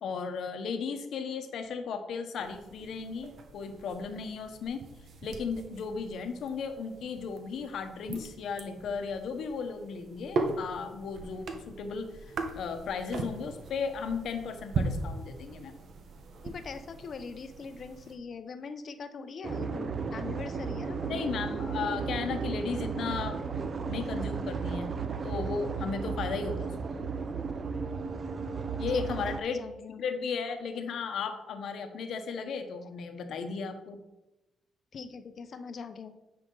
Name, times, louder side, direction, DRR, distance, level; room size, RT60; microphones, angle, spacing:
voice 1, 0.0-4.8 5.2-15.8 21.1-23.4 23.9-24.9 25.2-26.7 28.8-29.6 30.0-34.0, left 5 dB, 70° left, 6 dB, 1.0 m, -35 dB
sound 1, 2.4-18.2, right 3 dB, 60° right, 1.0 m, -39 dB
voice 2, 16.4-21.2 28.9-30.0 34.9-36.1, left 5 dB, 50° left, 9 dB, 0.7 m, -42 dB
sound 2, 19.4-29.4, right 5 dB, 40° right, 0.6 m, -34 dB
9.4 x 5.0 x 3.9 m, 0.99 s
cardioid pair, 90°, 0 cm